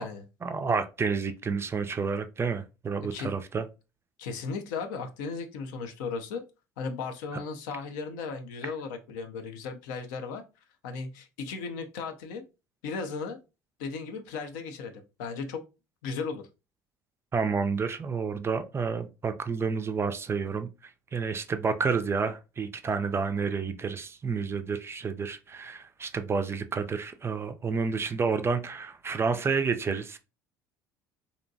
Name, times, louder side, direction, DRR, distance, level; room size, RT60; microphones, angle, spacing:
voice 1, 0.4-3.6 17.3-30.2, right 5 dB, 25° right, 0.3 m, -30 dB
voice 2, 4.2-6.4 6.8-10.4 10.8-12.4 12.8-13.4 13.8-15.6 16.0-16.5, left 4 dB, 70° left, 0.4 m, -36 dB
2.7 x 2.1 x 2.6 m
hypercardioid pair, 60°, 10 cm